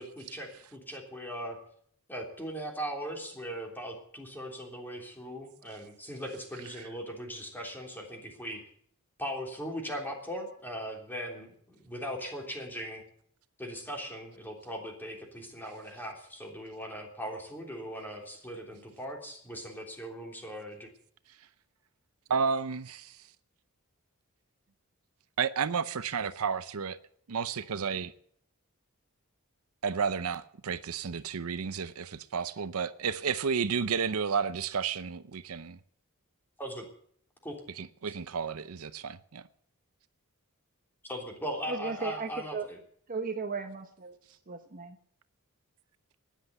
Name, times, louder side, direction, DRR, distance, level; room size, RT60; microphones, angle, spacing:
voice 1, 0.0-1.6 2.1-8.6 9.2-13.0 13.6-20.9 36.6-36.9 37.4-37.6 41.0-42.8, equal, 10° left, 3.3 m, -39 dB
voice 2, 22.3-23.2 25.4-27.0 27.3-28.1 29.8-35.8 37.8-39.4, right 6 dB, 75° right, 0.6 m, -32 dB
voice 3, 41.7-42.7 43.1-44.2 44.5-45.0, right 4 dB, 40° right, 0.9 m, -35 dB
13.5 x 10.0 x 8.3 m
head